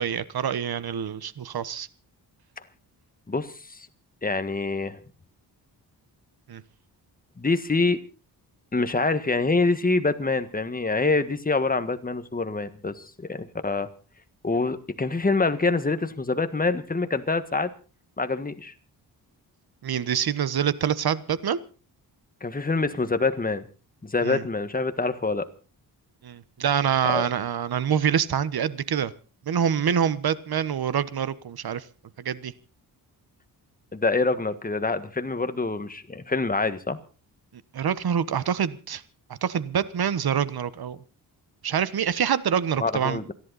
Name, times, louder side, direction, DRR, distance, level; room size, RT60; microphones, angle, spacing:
voice 1, 0.0-1.9 6.5-6.6 19.8-21.6 24.2-24.4 26.2-29.1 29.5-31.8 32.2-32.5 37.7-39.0 39.4-41.0 41.6-43.2, right 8 dB, 60° right, 16 dB, 1.2 m, -26 dB
voice 2, 3.3-3.9 4.2-5.0 7.4-8.0 8.7-13.9 14.4-17.7 18.2-18.7 22.4-23.7 24.0-25.5 27.0-27.3 33.9-37.0 42.8-43.3, left 3 dB, 20° left, 10 dB, 1.6 m, -25 dB
28.0 x 11.0 x 4.1 m, 0.36 s
cardioid pair, 100°, 42 cm